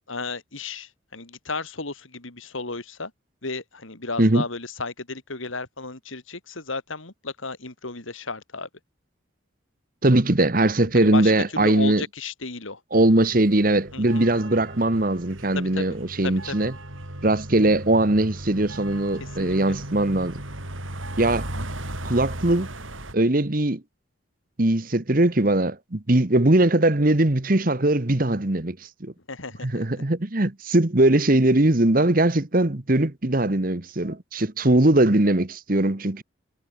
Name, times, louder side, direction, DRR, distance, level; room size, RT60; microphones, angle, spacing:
voice 1, 0.1-3.1 3.4-8.7 10.9-12.8 13.9-14.3 15.5-15.9 16.2-16.7 19.2-19.7 29.3-29.9, left 3 dB, 85° left, 3.4 m, -34 dB
voice 2, 10.0-12.0 12.9-16.7 17.2-20.4 21.2-21.5 22.0-22.7 23.1-23.8 24.6-29.1 29.6-36.2, right 1 dB, 45° right, 1.3 m, -20 dB
sound 1, 12.9-23.1, right 1 dB, 85° right, 6.9 m, -36 dB
head